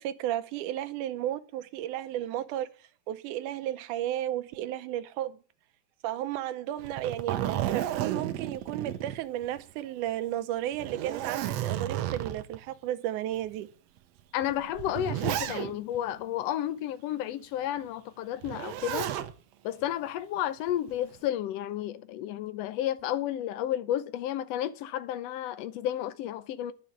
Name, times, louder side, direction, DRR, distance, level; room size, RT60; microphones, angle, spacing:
voice 1, 0.0-2.7 3.1-5.4 6.0-13.7, right 12 dB, 85° right, 2.2 m, -33 dB
Zipper (clothing), 6.8-9.7 10.1-10.2 10.7-12.6 13.3-13.4 14.4-16.0 18.4-19.3 20.7-21.2, right 12 dB, 70° right, 1.8 m, -32 dB
voice 2, 14.3-19.1 19.6-26.7, left 12 dB, 75° left, 1.6 m, -32 dB
10.5 x 6.7 x 7.3 m
omnidirectional pair, 3.5 m